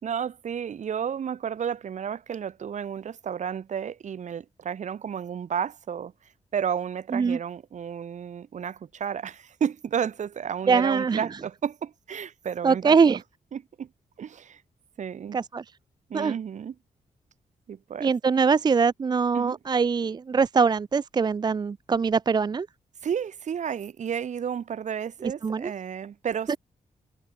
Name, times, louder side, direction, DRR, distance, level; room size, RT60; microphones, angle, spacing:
voice 1, 0.0-6.1 6.5-13.0 13.5-13.9 14.2-14.6 15.0-15.4 16.1-16.7 17.7-18.1 19.3-19.6 23.0-26.5, right 8 dB, 60° right, 3.1 m, -32 dB
voice 2, 10.7-11.2 12.6-13.2 15.3-15.6 16.1-16.3 18.0-22.7 25.4-25.7 26.5-26.6, right 5 dB, 30° right, 0.6 m, -23 dB
wide cardioid pair, 165°, 14 cm